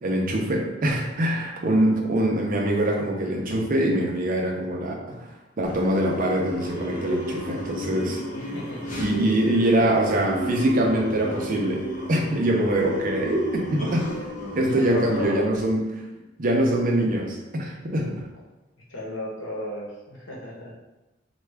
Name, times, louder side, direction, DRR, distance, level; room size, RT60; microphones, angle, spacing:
voice 1, 0.0-8.2 9.0-14.1 14.6-15.8 16.4-18.2, right 1 dB, 45° right, 0 dB, 0.6 m, -24 dB
sound 1, 5.6-15.3, equal, 40° left, 0.8 m, -32 dB
voice 2, 8.3-9.2 14.7-15.6 18.9-20.7, left 1 dB, 75° left, -4 dB, 0.9 m, -34 dB
3.3 x 2.3 x 3.3 m, 1.0 s
head